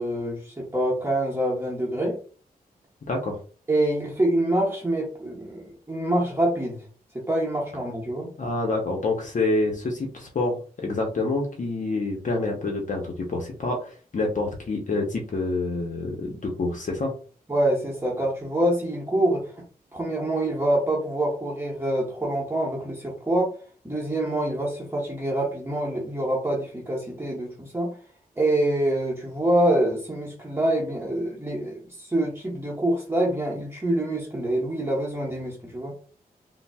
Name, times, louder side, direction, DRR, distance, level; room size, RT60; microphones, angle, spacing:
voice 1, 0.0-2.2 3.7-6.8 7.1-8.3 17.5-19.6 19.9-23.5 23.8-28.0 28.4-35.9, right 1 dB, 15° right, -3 dB, 0.9 m, -26 dB
voice 2, 3.1-3.4 8.4-17.1, left 2 dB, 50° left, 1 dB, 0.7 m, -27 dB
3.7 x 2.0 x 2.2 m, 0.40 s
cardioid pair, 65°, 16 cm